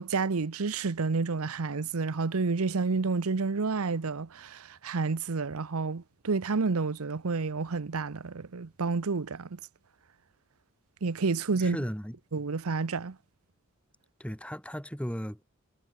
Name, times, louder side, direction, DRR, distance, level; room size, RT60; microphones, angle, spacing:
voice 1, 0.0-9.6 11.0-11.8 12.3-13.2, right 4 dB, 90° right, 0.8 m, -30 dB
voice 2, 11.6-12.1 14.2-15.4, equal, 5° left, 6.6 m, -35 dB
head